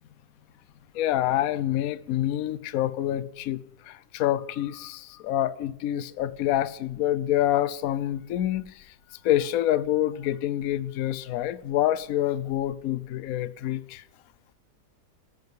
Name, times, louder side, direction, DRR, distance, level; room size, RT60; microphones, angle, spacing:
voice 1, 0.9-8.8 9.2-14.0, left 13 dB, 65° left, 1.1 m, -27 dB
13.5 x 9.5 x 9.5 m
omnidirectional pair, 1.8 m